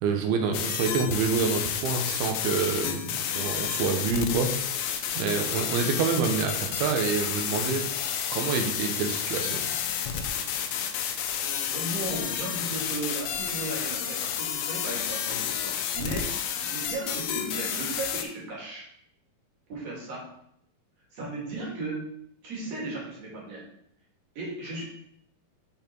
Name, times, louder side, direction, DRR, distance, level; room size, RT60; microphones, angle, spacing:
voice 1, 0.0-4.5 5.1-7.8 8.3-9.7, right 5 dB, 85° right, 4 dB, 2.9 m, -27 dB
sound 1, 0.5-18.2, left 8 dB, 80° left, 2.2 m, -30 dB
voice 2, 11.7-18.9 19.7-20.3 21.1-22.0 22.4-23.6 24.3-24.8, right 2 dB, 50° right, -4 dB, 3.2 m, -36 dB
8.4 x 4.4 x 4.5 m, 0.71 s
omnidirectional pair, 4.3 m